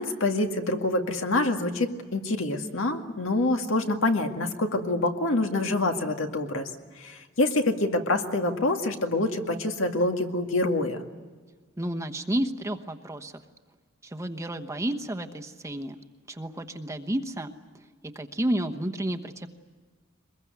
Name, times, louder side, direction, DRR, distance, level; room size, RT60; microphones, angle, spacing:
voice 1, 0.0-6.7 7.0-11.0, left 2 dB, 70° left, 5 dB, 2.0 m, -26 dB
voice 2, 11.8-13.3 14.0-16.0 16.3-17.5 18.0-19.5, right 1 dB, 15° right, 5 dB, 1.1 m, -31 dB
23.5 x 21.5 x 9.4 m, 1.4 s
head